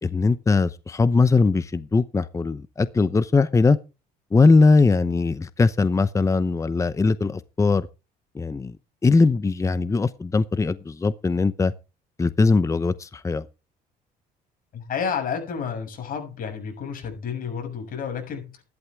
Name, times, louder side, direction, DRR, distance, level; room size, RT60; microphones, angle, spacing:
voice 1, 0.0-3.8 4.3-7.9 8.3-8.7 9.0-11.7 12.2-13.4, left 3 dB, 20° left, 0.8 m, -20 dB
voice 2, 14.7-18.6, left 6 dB, 55° left, 6.9 m, -31 dB
14.0 x 11.5 x 3.6 m
cardioid pair, 110°, 17 cm